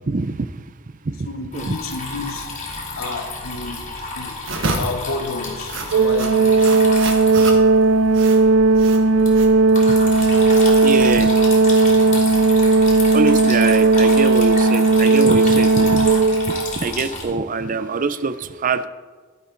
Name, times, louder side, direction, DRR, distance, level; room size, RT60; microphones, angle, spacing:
voice 1, 0.1-0.6 1.0-1.3 1.5-1.8 9.9-10.0 10.8-11.4 13.1-16.1 16.5-18.9, right 4 dB, 40° right, 13 dB, 0.5 m, -24 dB
voice 2, 1.2-2.5 3.0-6.5 7.4-7.6, left 3 dB, 75° left, 7 dB, 1.1 m, -31 dB
Water tap faucet / Trickle dribble, 1.5-17.2, left 3 dB, 35° left, 3.1 m, -31 dB
sound 1, 4.4-12.3, right 3 dB, 65° right, 1.3 m, -31 dB
Organ, 5.9-16.8, right 3 dB, 85° right, 0.6 m, -15 dB
11.5 x 11.0 x 3.9 m, 1.4 s
head